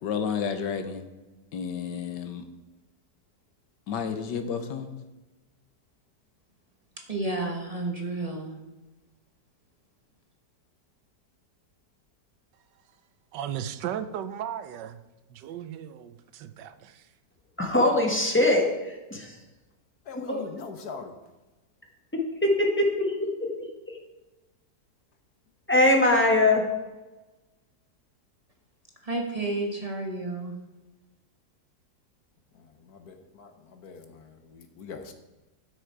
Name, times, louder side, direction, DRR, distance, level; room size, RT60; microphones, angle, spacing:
voice 1, 0.0-1.0 1.5-2.4 3.9-4.9, left 7 dB, 85° left, 1.6 m, -31 dB
voice 2, 7.1-8.6 29.0-30.5, right 2 dB, 25° right, 1.1 m, -31 dB
voice 3, 13.3-15.0 15.3-17.1, right 10 dB, 85° right, 1.3 m, -36 dB
voice 4, 17.6-19.4 20.3-20.4 22.1-23.5 23.9-24.0 25.7-26.7, left 2 dB, 5° left, 1.5 m, -22 dB
voice 5, 20.1-21.1 32.5-35.2, left 5 dB, 65° left, 1.4 m, -42 dB
12.5 x 6.3 x 4.6 m
omnidirectional pair, 1.8 m